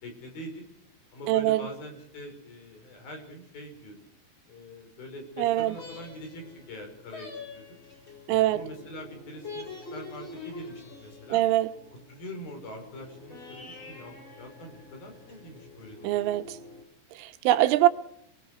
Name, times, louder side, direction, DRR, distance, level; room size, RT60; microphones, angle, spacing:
voice 1, 0.0-0.6 1.1-4.0 4.5-7.6 8.3-11.4 12.1-16.4, equal, 50° left, 6.6 m, -43 dB
voice 2, 1.3-1.7 5.4-5.8 8.3-8.6 11.3-11.7 16.0-16.6 17.1-17.9, right 15 dB, 85° right, 3.6 m, -23 dB
sound 1, 5.5-16.8, left 3 dB, 35° left, 5.2 m, -46 dB
28.5 x 20.5 x 4.9 m
omnidirectional pair, 5.6 m